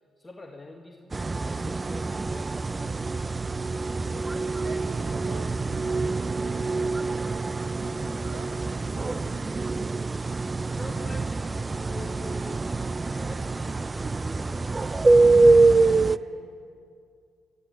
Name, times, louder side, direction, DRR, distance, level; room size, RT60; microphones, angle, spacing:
voice 1, 0.2-3.0 3.7-4.6 10.7-14.9, left 2 dB, 15° left, 1 dB, 1.6 m, -46 dB
sound 1, 1.1-16.2, right 3 dB, 25° right, 0.4 m, -25 dB
voice 2, 4.6-8.5 8.9-9.9 15.1-16.5, right 3 dB, 70° right, -2 dB, 3.4 m, -46 dB
22.5 x 13.5 x 9.7 m, 2.3 s
cardioid pair, 90°, 0 cm